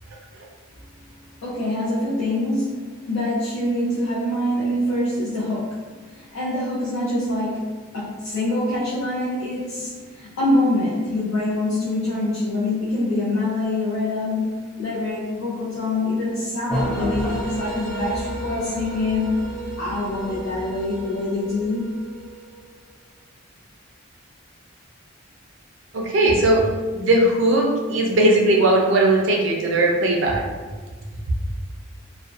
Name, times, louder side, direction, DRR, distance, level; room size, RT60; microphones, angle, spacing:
voice 1, 1.4-2.8 3.1-5.8 6.0-19.3 19.8-21.9, left 1 dB, 70° left, -8 dB, 0.6 m, -25 dB
sound 1, 16.7-22.7, equal, 5° left, 0.4 m, -31 dB
voice 2, 25.9-26.7 26.9-30.4, right 1 dB, 60° right, -1 dB, 0.4 m, -18 dB
2.5 x 2.1 x 2.4 m, 1.4 s
head